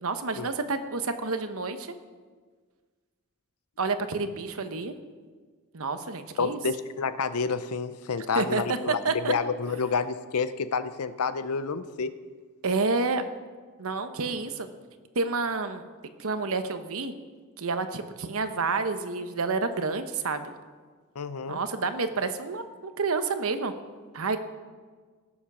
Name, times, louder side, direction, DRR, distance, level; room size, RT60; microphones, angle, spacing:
voice 1, 0.0-1.9 3.8-4.9 5.7-6.6 8.3-8.8 9.0-9.3 12.6-13.2 13.8-14.7 15.1-15.8 16.2-17.1 17.6-20.5 21.5-23.7 24.1-24.4, right 4 dB, 70° right, 9 dB, 1.0 m, -29 dB
voice 2, 6.4-12.1 21.2-21.6, left 5 dB, 85° left, 13 dB, 0.7 m, -29 dB
17.5 x 7.2 x 6.1 m, 1.5 s
head